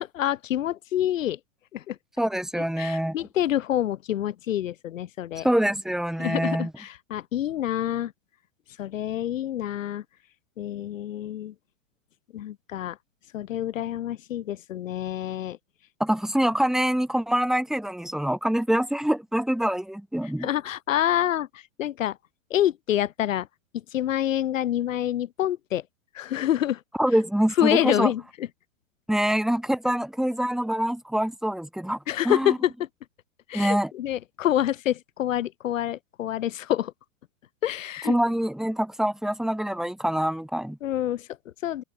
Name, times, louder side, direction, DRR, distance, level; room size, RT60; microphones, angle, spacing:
voice 1, 0.0-1.4 1.7-2.0 2.8-5.5 6.2-8.1 8.8-10.0 10.6-11.5 12.3-13.0 13.3-15.6 20.4-21.5 21.8-22.2 22.5-23.5 23.9-25.8 26.1-26.8 27.6-28.5 32.1-32.7 33.5-36.9 37.6-38.2 40.8-41.8, left 12 dB, 70° left, 6.8 m, -27 dB
voice 2, 2.2-3.2 5.4-6.7 16.0-20.5 27.0-28.1 29.1-32.0 32.3-32.6 33.5-33.9 38.1-40.8, equal, ahead, 3.3 m, -25 dB
supercardioid pair, 165°, 40 cm